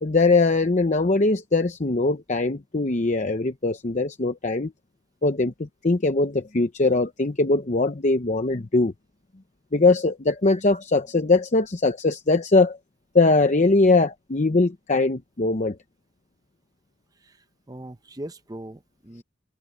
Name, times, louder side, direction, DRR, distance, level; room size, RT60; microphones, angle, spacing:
voice 1, 0.0-4.7 5.2-8.9 9.7-12.8 13.1-15.8, left 3 dB, 40° left, 0.8 m, -21 dB
voice 2, 17.2-19.2, right 1 dB, 20° right, 0.8 m, -40 dB
head